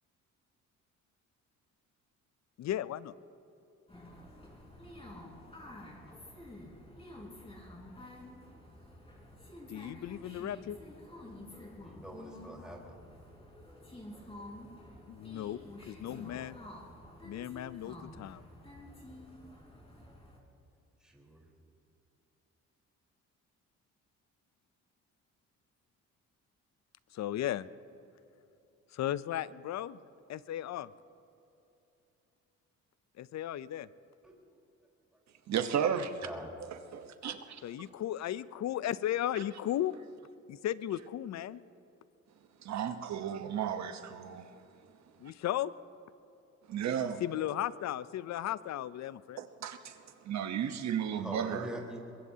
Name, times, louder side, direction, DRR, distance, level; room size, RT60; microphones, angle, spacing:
voice 1, 2.6-3.1 9.7-10.8 15.1-16.6 17.2-18.4 27.1-27.7 28.9-30.0 30.3-30.9 33.2-33.9 37.6-40.0 40.5-41.6 45.2-45.7 47.2-49.4, left 12 dB, 65° left, 17 dB, 0.6 m, -35 dB
sound 1, 3.9-20.4, left 1 dB, 20° left, 4.2 m, -50 dB
voice 2, 11.8-13.0 21.0-21.4 34.2-34.4 35.9-36.5 51.2-52.0, right 1 dB, ahead, -2 dB, 4.1 m, -44 dB
voice 3, 35.5-36.2 36.9-37.6 42.6-44.5 46.7-47.2 49.4-49.9 50.2-51.7, right 8 dB, 65° right, 8 dB, 1.1 m, -34 dB
23.0 x 21.5 x 2.8 m, 2.9 s
cardioid pair, 90°, 30 cm